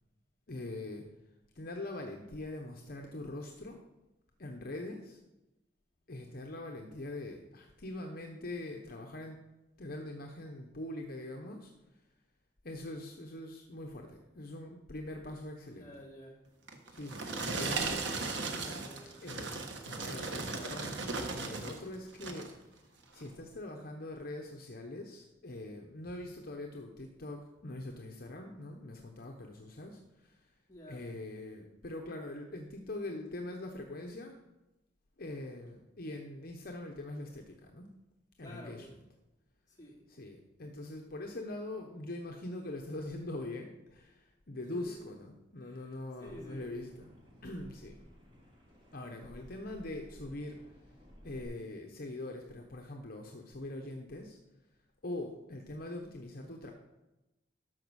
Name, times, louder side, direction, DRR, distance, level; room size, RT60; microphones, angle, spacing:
voice 1, 0.5-1.0 1.5-3.8 4.4-5.2 6.1-9.4 9.8-11.7 12.6-16.0 16.9-18.2 19.2-22.5 23.1-30.5 30.9-34.4 35.2-37.9 38.4-38.8 40.1-47.1 47.4-48.0 48.9-50.6 51.2-54.4 55.0-56.7, left 2 dB, 55° left, 2 dB, 1.0 m, -43 dB
voice 2, 15.7-16.5 18.6-19.3 30.7-31.1 38.4-38.9 39.7-40.1 44.7-45.0 45.6-46.7, equal, 20° left, -3 dB, 2.7 m, -51 dB
sound 1, 16.7-21.8 22.1-22.6 23.1-23.3, right 3 dB, 75° right, 1.3 m, -37 dB
sound 2, 46.2-51.4, equal, 30° right, 2.7 m, -56 dB
12.5 x 5.1 x 6.3 m, 0.99 s
head